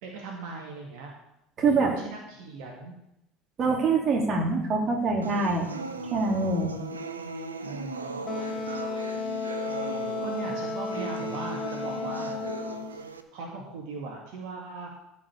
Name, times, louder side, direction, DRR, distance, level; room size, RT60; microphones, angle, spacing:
voice 1, 0.0-1.1 1.7-2.9 7.6-8.2 10.2-12.4 12.9-13.0 13.3-14.9, right 4 dB, 65° right, 0 dB, 2.1 m, -39 dB
voice 2, 1.6-1.9 3.6-5.7 6.1-6.8, right 3 dB, 40° right, 0 dB, 3.1 m, -24 dB
sound 1, 5.2-13.2, right 3 dB, 90° right, 0.8 m, -38 dB
Wind instrument woodwind instrument, 8.3-13.0, left 4 dB, 35° left, 1.8 m, -33 dB
14.5 x 5.4 x 6.9 m, 0.83 s
hypercardioid pair, 70°, 0 cm